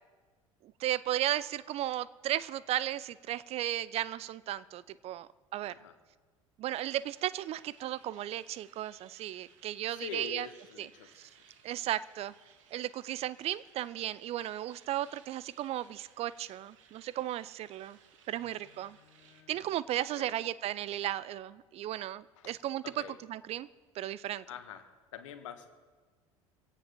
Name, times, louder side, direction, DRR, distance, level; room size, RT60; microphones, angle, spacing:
voice 1, 0.6-5.7 6.6-10.5 10.8-10.9 11.6-12.3 12.7-18.0 18.3-19.0 19.5-22.8 23.3-23.7 24.0-24.4, right 13 dB, 35° right, 18 dB, 0.4 m, -35 dB
sound 1, 6.9-19.4, right 8 dB, 65° right, 1.5 m, -62 dB
voice 2, 9.9-11.7 18.3-19.8 20.2-20.4 22.4-22.6 22.8-23.2 24.5-25.7, left 9 dB, 65° left, 9 dB, 1.3 m, -47 dB
24.5 x 16.5 x 3.0 m, 1.4 s
figure-of-eight pair, 70°, 17 cm